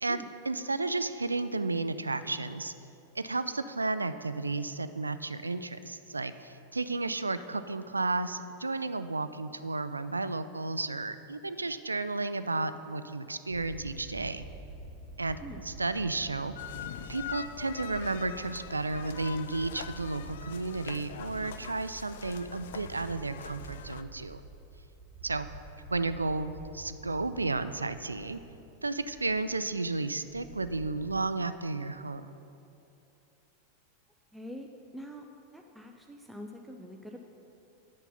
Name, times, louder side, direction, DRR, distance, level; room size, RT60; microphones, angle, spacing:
voice 1, 0.0-2.7 3.2-14.4 15.2-16.5 17.1-24.4 25.2-25.5 25.9-28.4 28.8-32.3, right 3 dB, 80° right, 12 dB, 0.3 m, -33 dB
sound 1, 13.5-31.1, right 2 dB, 40° right, 1.0 m, -48 dB
sound 2, 16.6-24.0, left 9 dB, 55° left, 0.3 m, -44 dB
voice 2, 34.3-34.7 34.9-35.3 35.5-37.2, equal, 5° right, 2 dB, 0.5 m, -44 dB
9.2 x 5.8 x 5.5 m, 2.8 s
figure-of-eight pair, 90°, 0 cm